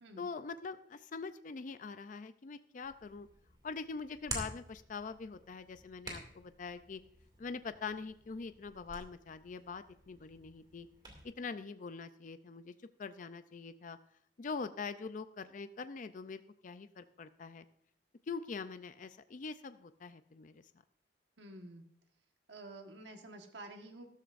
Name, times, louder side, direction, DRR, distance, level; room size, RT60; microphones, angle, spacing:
voice 1, 0.2-3.3 3.6-7.0 7.4-10.9 11.2-12.7 13.0-14.0 14.4-17.6 18.3-20.6, left 4 dB, 45° left, 11 dB, 0.4 m, -43 dB
Hands, 2.8-11.2, right 2 dB, 25° right, 2.3 m, -49 dB
voice 2, 21.4-21.9 22.5-24.1, right 2 dB, 75° right, 4 dB, 1.4 m, -50 dB
13.5 x 13.0 x 2.5 m, 0.68 s
head